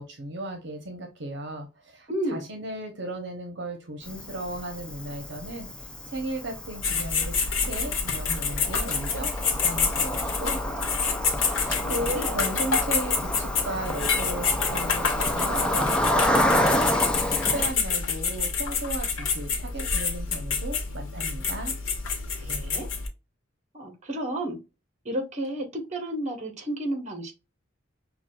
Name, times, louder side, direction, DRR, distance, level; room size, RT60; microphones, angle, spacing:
voice 1, 0.0-10.9 11.4-16.9 17.5-21.7, right 1 dB, 60° right, 4 dB, 0.9 m, -36 dB
voice 2, 2.1-2.5 11.5-12.3 22.4-22.9 23.7-24.6 25.0-27.3, right 1 dB, 35° right, 5 dB, 1.1 m, -32 dB
Cricket, 4.0-17.7, equal, 5° left, 0.4 m, -29 dB
sound 1, 6.8-23.1, left 5 dB, 85° left, 1.1 m, -28 dB
5.9 x 2.3 x 2.3 m, 0.27 s
head